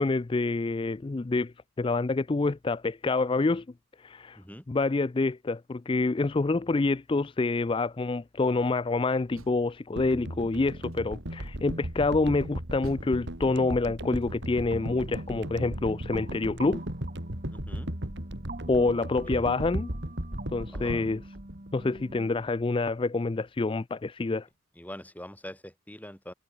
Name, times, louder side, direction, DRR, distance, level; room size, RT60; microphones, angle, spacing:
voice 1, 0.0-3.7 4.0-4.4 4.7-16.8 18.7-19.9 20.5-21.2 21.7-24.5, left 3 dB, 25° left, 0.3 m, -27 dB
Door, 9.1-10.3 10.9-11.5 12.8-14.7, right 1 dB, 75° right, 5.1 m, -55 dB
sound 1, 10.0-22.3 22.6-22.7, right 1 dB, 50° right, 3.4 m, -36 dB
sound 2, 14.7-22.3, right 2 dB, 35° right, 2.1 m, -46 dB
voice 2, 17.5-17.9 19.2-19.4 20.7-21.1 24.8-26.3, left 1 dB, 5° left, 5.2 m, -43 dB
head